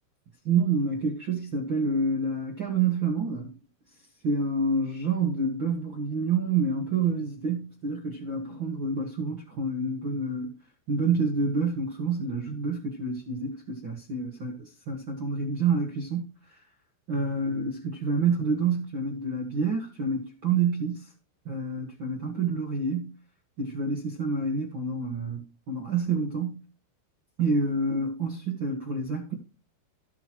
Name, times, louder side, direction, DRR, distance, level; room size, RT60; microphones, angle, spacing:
voice 1, 0.4-3.5 4.2-10.6 10.9-16.6 17.1-21.1 21.4-23.1 23.6-26.6 27.4-29.3, right 4 dB, 70° right, 1.1 m, -28 dB
18.0 x 6.1 x 3.0 m
omnidirectional pair, 5.1 m